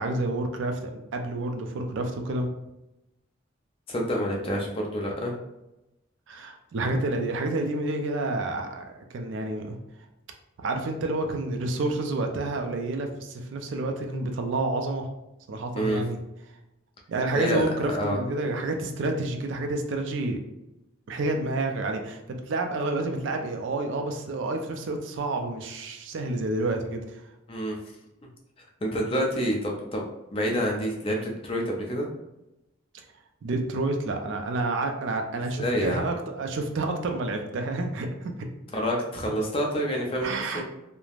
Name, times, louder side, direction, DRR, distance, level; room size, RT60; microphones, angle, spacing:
voice 1, 0.0-2.5 6.3-9.8 10.6-15.1 15.5-16.2 17.1-20.4 21.1-27.2 33.4-38.5 40.2-40.6, right 2 dB, 60° right, 4 dB, 0.4 m, -29 dB
voice 2, 3.9-5.3 15.7-16.0 17.3-18.2 27.5-27.8 28.8-30.1 30.3-32.1 35.6-36.2 38.7-40.3 40.5-40.6, equal, 25° left, 0 dB, 0.4 m, -27 dB
3.1 x 2.0 x 2.4 m, 0.92 s
head